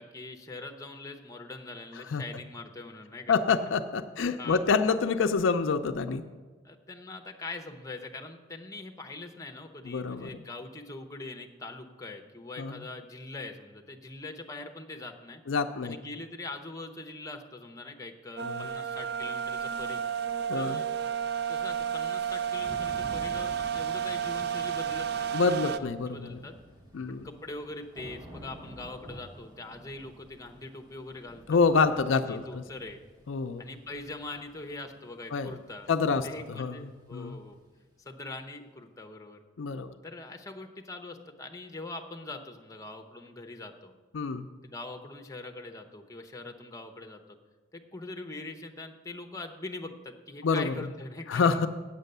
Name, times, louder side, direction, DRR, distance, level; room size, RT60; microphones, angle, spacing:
voice 1, 0.0-3.4 4.4-4.6 6.6-15.4 15.8-20.0 20.5-20.9 21.5-26.6 27.2-31.6 32.3-33.0 33.6-35.9 36.2-37.6 38.0-39.4 40.0-43.9 44.6-47.4 47.7-51.6, left 2 dB, 15° left, 4 dB, 0.7 m, -42 dB
voice 2, 3.3-6.2 9.9-10.3 12.6-12.8 15.5-16.0 18.4-18.7 20.5-20.8 25.3-26.4 26.9-27.2 31.5-32.6 33.3-33.6 35.3-35.5 35.9-36.8 37.1-37.4 39.6-39.9 44.1-44.5 50.4-50.7 51.3-51.7, left 5 dB, 65° left, 8 dB, 0.4 m, -27 dB
sound 1, 18.4-25.8, right 8 dB, 50° right, 0.4 m, -32 dB
Thunder / Rain, 22.2-38.0, equal, 20° right, 1.4 m, -50 dB
8.3 x 8.1 x 6.7 m, 1.3 s
head